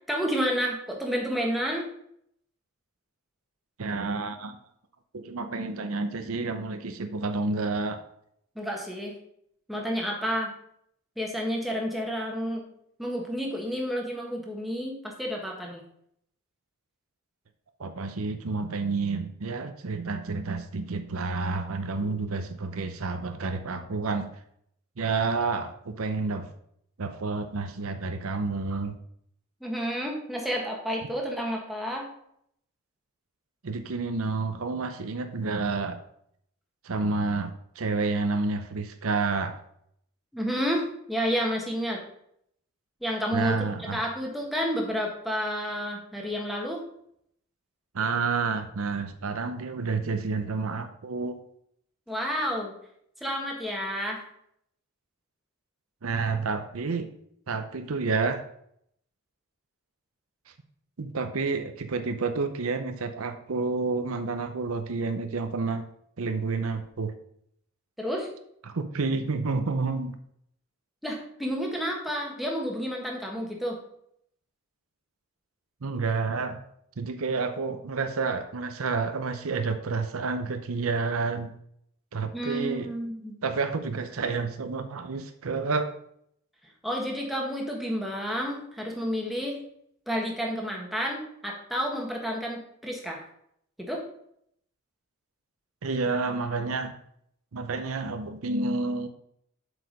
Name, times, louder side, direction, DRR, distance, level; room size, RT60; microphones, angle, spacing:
voice 1, 0.1-1.9 8.5-9.1 9.7-10.5 11.2-12.6 13.0-15.8 29.6-32.1 40.3-42.0 43.0-43.6 43.9-46.8 52.1-52.7 53.2-54.2 68.0-68.3 71.0-73.8 82.3-83.3 86.8-89.6 90.1-93.2 93.8-94.0, equal, ahead, -1 dB, 1.4 m, -30 dB
voice 2, 3.8-4.6 5.1-8.0 17.8-24.3 25.0-26.5 27.0-29.0 33.6-36.0 36.8-39.6 43.3-44.0 47.9-51.4 56.0-57.1 57.5-58.4 61.0-65.9 66.2-67.1 68.6-70.2 75.8-76.7 77.0-81.5 82.1-82.9 83.4-85.9 95.8-97.0 97.5-99.1, right 4 dB, 75° right, 9 dB, 0.7 m, -29 dB
7.8 x 4.9 x 5.2 m, 0.70 s
head